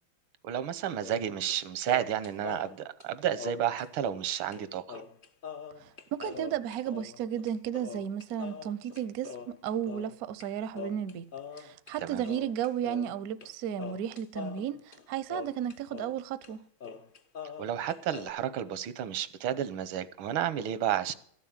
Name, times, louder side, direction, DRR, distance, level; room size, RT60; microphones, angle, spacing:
voice 1, 0.4-5.0 12.0-12.2 17.6-21.1, right 10 dB, 85° right, 1.6 m, -31 dB
sound 1, 1.0-1.6 1.9-4.2 4.5-4.6 4.9-10.5 10.7-11.9 12.2-13.5 13.8-16.2 16.4-16.5 16.8-18.3, left 7 dB, 55° left, 0.5 m, -43 dB
voice 2, 5.8-11.3 11.6-16.7, right 9 dB, 70° right, 0.9 m, -34 dB
13.0 x 7.3 x 8.7 m
omnidirectional pair, 2.2 m